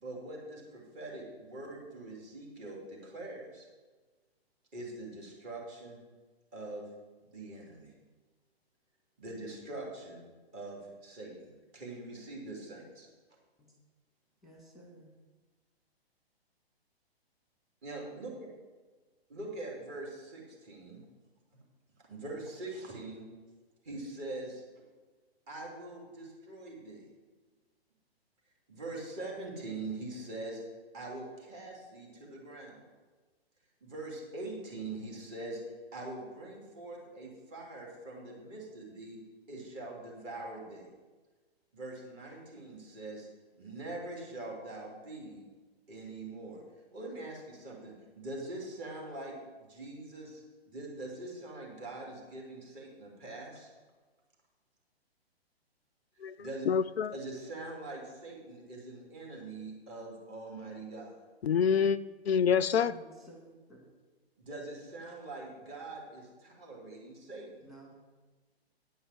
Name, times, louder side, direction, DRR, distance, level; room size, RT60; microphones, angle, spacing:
voice 1, 0.0-3.7 4.7-6.0 6.5-6.8 7.3-7.9 9.2-10.3 10.5-13.1 17.8-18.3 19.3-21.0 22.1-23.3 23.8-24.6 25.5-27.0 28.7-30.6 30.9-32.8 33.8-35.6 35.9-39.2 39.5-40.9 41.7-43.3 43.5-45.5 45.9-46.6 46.9-53.7 56.4-56.7 57.1-61.2 64.4-67.6, right 2 dB, 30° right, 3.1 m, -43 dB
voice 2, 14.4-15.1 62.8-63.9 67.6-67.9, right 1 dB, ahead, 1.8 m, -54 dB
voice 3, 56.7-57.1 61.4-62.0 62.3-62.9, left 7 dB, 75° left, 0.5 m, -26 dB
9.5 x 5.6 x 7.4 m
figure-of-eight pair, 125°, 31 cm